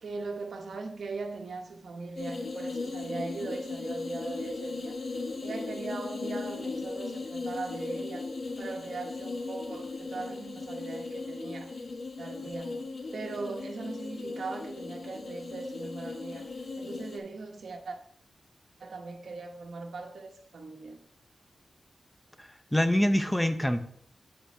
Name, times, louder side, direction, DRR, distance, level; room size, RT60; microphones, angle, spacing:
voice 1, 0.0-4.9 5.4-8.3 8.6-11.7 12.2-12.8 13.1-16.5 16.8-18.0 18.8-21.0, right 3 dB, 75° right, 1.2 m, -39 dB
sound 1, 2.2-17.2, left 3 dB, 60° left, 1.3 m, -37 dB
voice 2, 22.4-23.8, left 1 dB, 5° left, 0.6 m, -25 dB
8.3 x 7.9 x 3.4 m
wide cardioid pair, 135°, 0 cm